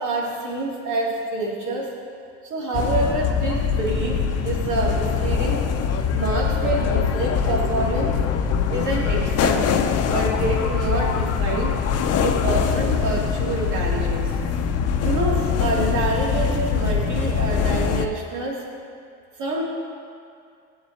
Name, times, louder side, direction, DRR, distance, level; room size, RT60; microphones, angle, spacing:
voice 1, 0.0-2.0 2.5-5.6 6.1-8.2 8.7-9.7 10.1-11.8 12.2-14.3 15.0-18.7 19.4-19.6, right 2 dB, 60° right, -4 dB, 2.8 m, -27 dB
sound 1, 2.7-18.1, left 6 dB, 50° left, 0.8 m, -23 dB
17.0 x 7.5 x 2.9 m, 2.3 s
supercardioid pair, 90°, 33 cm